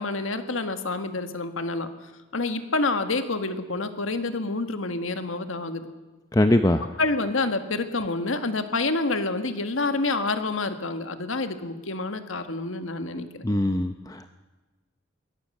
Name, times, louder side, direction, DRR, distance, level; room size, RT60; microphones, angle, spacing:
voice 1, 0.0-1.9 2.3-5.8 7.0-13.4, left 3 dB, 80° left, 8 dB, 1.6 m, -28 dB
voice 2, 6.3-6.8 13.2-14.3, left 1 dB, 15° left, 8 dB, 0.6 m, -22 dB
23.0 x 17.5 x 6.6 m, 1.2 s
head